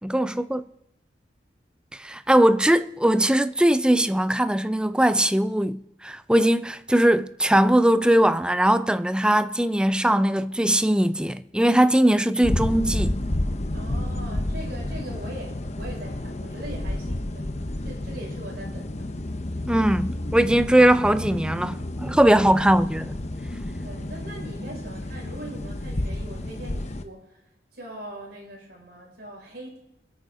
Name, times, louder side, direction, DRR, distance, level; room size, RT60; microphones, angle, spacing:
voice 1, 0.0-0.6 2.0-13.2 19.7-23.1, right 1 dB, 5° right, 0.5 m, -20 dB
sound 1, 12.4-27.0, left 1 dB, 40° left, 1.0 m, -30 dB
voice 2, 13.7-19.1 23.8-27.4 27.7-29.8, right 1 dB, 60° right, 6.1 m, -41 dB
25.0 x 9.1 x 3.9 m
head